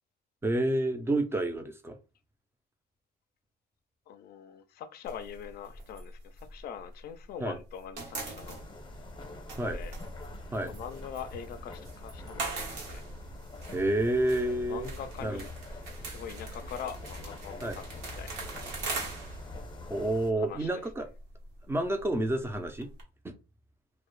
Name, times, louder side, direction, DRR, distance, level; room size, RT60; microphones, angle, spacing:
voice 1, 0.4-2.0 7.4-7.6 9.6-9.8 10.5-10.7 13.7-14.9 15.2-15.4 17.6-17.8 19.9-21.1 21.7-22.9 23.2-23.4, right 1 dB, 15° right, 0.4 m, -29 dB
voice 2, 4.1-8.6 9.6-9.9 10.6-13.0 14.7-15.4 16.0-18.4 20.4-20.8, left 8 dB, 65° left, 0.4 m, -43 dB
sound 1, 5.1-7.3 7.6-23.0, right 3 dB, 90° right, 0.9 m, -42 dB
sound 2, 8.4-20.3, left 2 dB, 30° left, 0.6 m, -45 dB
2.1 x 2.0 x 2.9 m
cardioid pair, 110°, 17 cm